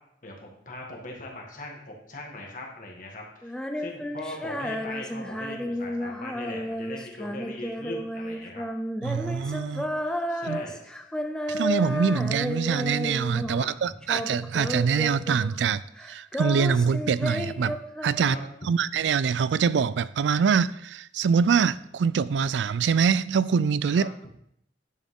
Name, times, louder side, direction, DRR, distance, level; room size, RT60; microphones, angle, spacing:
voice 1, 0.2-8.7 10.3-10.8 13.5-14.0 18.2-18.4 23.9-24.1, left 1 dB, 45° left, 1.7 m, -40 dB
Female singing, 3.4-13.7 14.0-15.7 16.0-18.6, equal, 5° left, 0.5 m, -32 dB
voice 2, 9.0-9.8 10.5-10.6 11.5-15.8 16.1-18.4 18.7-24.3, right 6 dB, 90° right, 0.4 m, -24 dB
10.5 x 6.1 x 3.7 m
head